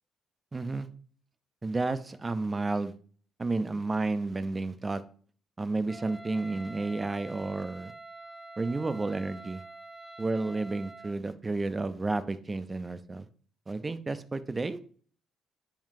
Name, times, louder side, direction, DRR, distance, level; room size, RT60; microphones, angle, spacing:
voice 1, 0.5-0.9 1.6-2.9 3.4-5.0 5.6-7.9 8.6-9.6 10.2-13.3 13.7-14.9, right 3 dB, 30° right, 13 dB, 0.7 m, -31 dB
Wind instrument woodwind instrument, 5.9-11.2, right 2 dB, 5° left, 0.7 m, -47 dB
10.0 x 3.8 x 2.7 m, 0.44 s
hypercardioid pair, 50°, 0 cm